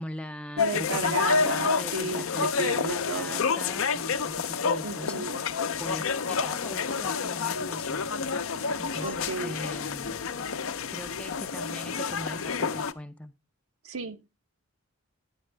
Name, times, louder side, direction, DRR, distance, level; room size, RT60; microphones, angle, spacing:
voice 1, 0.0-8.4 8.8-10.2 10.9-13.3, equal, 5° left, 0.4 m, -41 dB
sound 1, 0.6-12.9, left 5 dB, 65° left, 0.6 m, -29 dB
voice 2, 0.6-3.4 4.8-5.4 9.0-9.6 13.8-14.3, right 3 dB, 70° right, 0.8 m, -33 dB
9.9 x 9.5 x 3.3 m
head